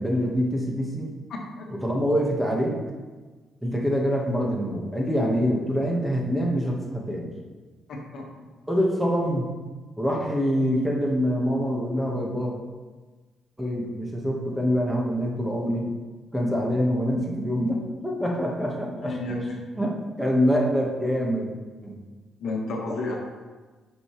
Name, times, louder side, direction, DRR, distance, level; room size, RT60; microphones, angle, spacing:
voice 1, 0.0-1.1 1.8-2.8 3.6-7.3 8.7-9.5 10.0-12.5 13.6-15.9 16.3-19.2 19.8-19.9 20.2-21.5 21.8-22.0, equal, 5° right, -2 dB, 1.6 m, -25 dB
voice 2, 1.3-1.7 7.9-8.5 19.0-19.6 22.4-23.2, left 2 dB, 65° left, 0 dB, 1.4 m, -32 dB
9.6 x 5.2 x 3.3 m, 1.3 s
cardioid pair, 90°, 0 cm